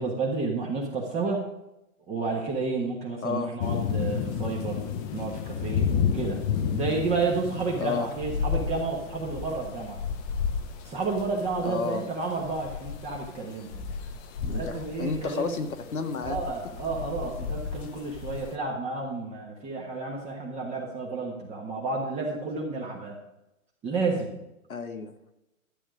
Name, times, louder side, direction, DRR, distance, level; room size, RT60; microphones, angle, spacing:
voice 1, 0.0-1.4 2.1-4.8 5.1-5.9 6.1-6.4 6.7-10.0 10.8-13.8 14.5-15.6 16.2-23.2 23.8-24.4, right 3 dB, 15° right, -1 dB, 1.5 m, -31 dB
voice 2, 3.2-3.5 7.8-8.1 11.6-12.0 14.4-16.4 24.7-25.1, left 5 dB, 80° left, 7 dB, 1.7 m, -31 dB
sound 1, 3.6-18.5, left 7 dB, 15° left, 0.6 m, -32 dB
12.5 x 8.8 x 5.0 m, 0.91 s
hypercardioid pair, 140°, 42 cm